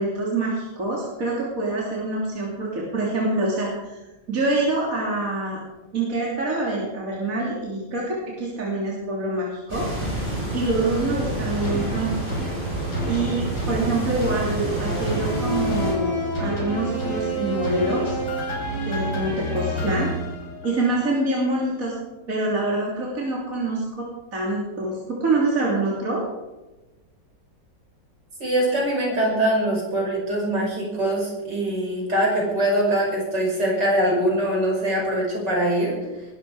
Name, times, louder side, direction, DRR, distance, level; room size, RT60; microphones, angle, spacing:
voice 1, 0.0-4.0 4.3-5.6 5.9-9.9 10.5-12.1 13.1-18.1 18.8-20.2 20.6-21.9 22.3-26.2, right 2 dB, 45° right, -4 dB, 3.5 m, -25 dB
sound 1, 9.7-15.9, right 1 dB, 25° right, 7.2 m, -29 dB
sound 2, 11.6-21.0 21.5-21.6, equal, 65° left, 5.0 m, -29 dB
voice 2, 28.4-36.0, right 1 dB, 70° right, -2 dB, 6.5 m, -23 dB
21.5 x 12.5 x 4.8 m, 1.1 s
omnidirectional pair, 2.0 m